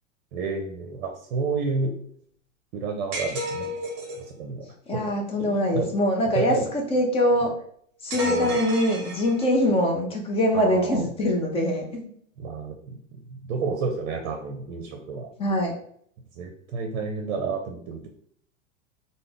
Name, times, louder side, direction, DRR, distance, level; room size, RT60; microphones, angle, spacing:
voice 1, 0.3-1.9 2.7-3.7 4.3-5.0 5.4-5.9 6.3-6.7 8.1-8.6 10.5-11.1 12.4-15.3 16.4-18.1, right 4 dB, 55° right, 3 dB, 0.6 m, -30 dB
sound 1, 3.1-4.3 8.1-9.7, equal, 30° right, 0.8 m, -32 dB
voice 2, 4.9-7.5 8.0-12.1 15.4-15.7, left 1 dB, 15° left, 1 dB, 0.4 m, -23 dB
3.7 x 2.0 x 3.4 m, 0.62 s
hypercardioid pair, 110°, 40 cm